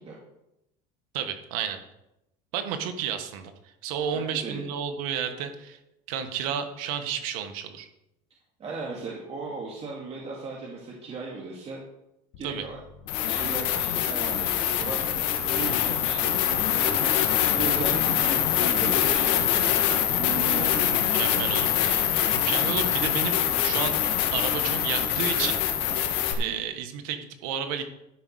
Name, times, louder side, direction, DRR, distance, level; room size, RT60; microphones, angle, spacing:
voice 1, 1.1-1.8 2.5-5.8 6.1-7.9 12.4-12.6 15.6-15.8 20.6-22.1 22.3-23.9 24.3-25.6 26.0-27.9, right 8 dB, 85° right, 7 dB, 1.5 m, -32 dB
voice 2, 4.1-4.7 8.6-11.8 12.4-12.8 13.3-15.0 15.4-17.1 17.5-19.7 20.2-21.1 26.4-26.6, right 4 dB, 35° right, -2 dB, 2.2 m, -37 dB
sound 1, 12.3-12.4 13.1-26.3, left 10 dB, 75° left, 1.7 m, -24 dB
12.0 x 5.4 x 6.4 m, 0.86 s
supercardioid pair, 110°, 17 cm